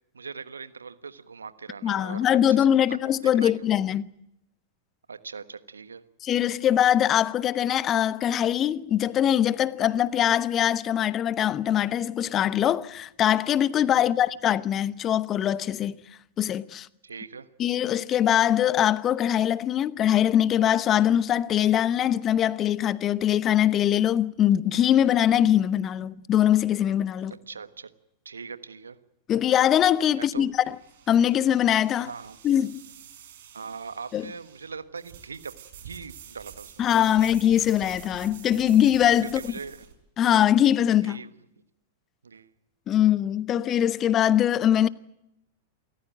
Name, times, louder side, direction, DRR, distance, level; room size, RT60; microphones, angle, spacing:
voice 1, 0.1-3.0 3.2-3.5 5.1-6.0 13.9-14.2 17.0-17.5 27.5-27.9 28.2-29.0 30.1-30.5 32.0-32.4 33.5-35.5 35.8-36.9 37.2-37.3 39.3-39.9 41.0-41.3 42.2-42.5, right 5 dB, 80° right, 1.3 m, -41 dB
voice 2, 1.8-4.0 6.2-16.0 16.4-16.9 17.6-27.3 29.3-30.7 31.1-32.1 32.4-32.8 34.1-34.3 36.8-39.4 40.2-41.2 42.9-44.9, left 10 dB, 30° left, 0.9 m, -22 dB
sound 1, 29.6-39.9, right 8 dB, 60° right, 5.4 m, -48 dB
28.5 x 14.5 x 9.1 m
figure-of-eight pair, 95°, 0 cm